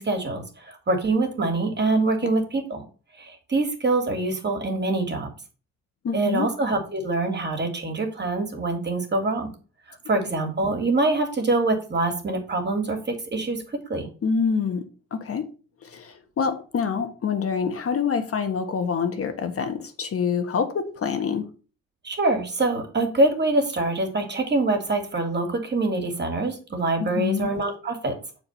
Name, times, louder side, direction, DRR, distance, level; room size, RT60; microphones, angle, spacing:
voice 1, 0.0-2.8 3.2-5.3 6.1-9.5 9.9-13.6 13.9-14.1 22.0-28.1, right 2 dB, 35° right, 4 dB, 2.7 m, -25 dB
voice 2, 6.0-6.5 14.2-14.8 15.1-15.5 15.9-21.4 27.0-27.5, left 6 dB, 50° left, 6 dB, 1.4 m, -26 dB
7.6 x 4.7 x 5.5 m, 0.36 s
cardioid pair, 90°, 30 cm